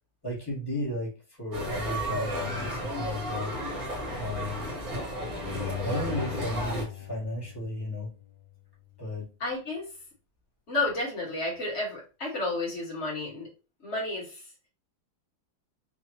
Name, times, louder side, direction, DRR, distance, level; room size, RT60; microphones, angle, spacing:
voice 1, 0.2-3.5 4.2-4.6 5.8-8.1 9.0-9.3, left 1 dB, 15° left, -6 dB, 1.5 m, -34 dB
sound 1, 1.5-6.8, equal, 55° right, 1.7 m, -33 dB
Bowed string instrument, 5.4-8.5 8.9-9.0, left 10 dB, 60° left, 1.3 m, -39 dB
voice 2, 9.4-9.9 10.7-13.5 13.8-14.4, left 2 dB, 35° left, -5 dB, 2.2 m, -31 dB
4.6 x 2.8 x 3.1 m, 0.32 s
omnidirectional pair, 2.0 m